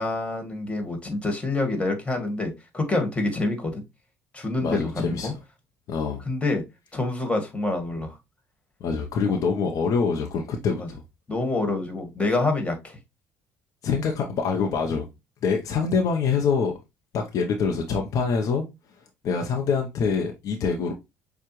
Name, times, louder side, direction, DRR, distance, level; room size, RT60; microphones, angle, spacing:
voice 1, 0.0-3.8 4.3-5.3 6.3-6.6 6.9-8.2 9.3-9.4 10.8-10.9 11.3-13.0, left 2 dB, 20° left, 1.8 m, -27 dB
voice 2, 4.6-5.3 5.9-6.2 8.8-11.0 13.8-15.1 15.4-16.7 17.1-18.7 19.2-20.9, left 5 dB, 60° left, 0.8 m, -25 dB
6.8 x 2.4 x 3.1 m
supercardioid pair, 85°, 6 cm